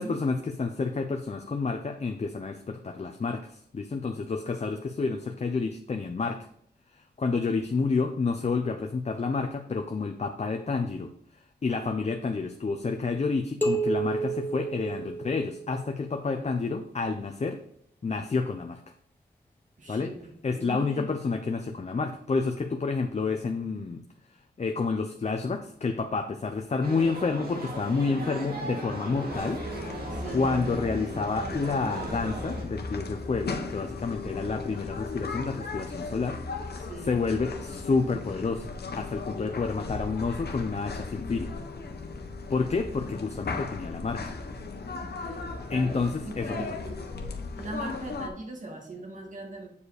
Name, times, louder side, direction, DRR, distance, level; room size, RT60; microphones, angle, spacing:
voice 1, 0.0-6.5 7.2-11.1 11.6-17.6 18.0-18.8 19.9-20.1 20.4-24.0 24.6-29.6 30.3-36.4 37.0-38.7 38.9-41.5 42.5-44.2 45.7-46.7, left 4 dB, 40° left, 5 dB, 0.7 m, -29 dB
sound 1, 13.6-16.0, right 3 dB, 10° left, 1.4 m, -30 dB
voice 2, 16.2-16.5 19.8-21.2 30.1-30.5 36.8-37.2 45.7-47.0 47.5-49.7, right 2 dB, 45° right, 1 dB, 2.3 m, -40 dB
sound 2, 26.8-32.7, right 2 dB, 60° right, 2.4 m, -37 dB
sound 3, 29.3-48.3, left 3 dB, 65° left, 1.2 m, -37 dB
8.3 x 4.9 x 5.0 m, 0.66 s
wide cardioid pair, 110°, 17 cm